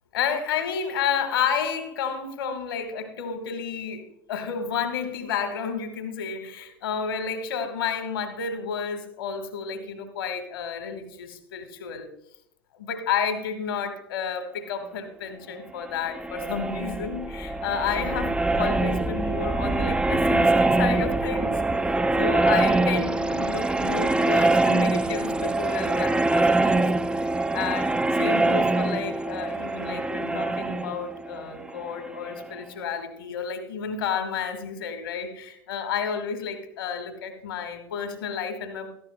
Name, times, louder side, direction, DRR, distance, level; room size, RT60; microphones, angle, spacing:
voice 1, 0.1-12.1 12.7-26.8 27.5-38.9, left 6 dB, 70° left, 7 dB, 1.6 m, -31 dB
sound 1, 15.9-32.5, right 2 dB, 10° right, 0.5 m, -24 dB
16.5 x 14.0 x 2.3 m, 0.76 s
figure-of-eight pair, 70°, 12 cm